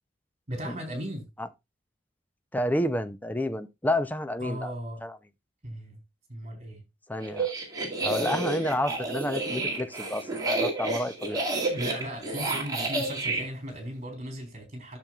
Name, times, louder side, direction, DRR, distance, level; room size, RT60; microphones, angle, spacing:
voice 1, 0.5-1.3 4.4-5.0 5.6-6.0 6.3-6.8 11.7-15.0, equal, 40° right, 4.0 m, -37 dB
voice 2, 2.5-4.7 5.0-5.2 7.1-7.5 8.0-11.4, left 1 dB, 10° left, 0.6 m, -30 dB
sound 1, 7.2-13.4, right 2 dB, 20° right, 2.2 m, -30 dB
12.0 x 7.0 x 2.4 m
head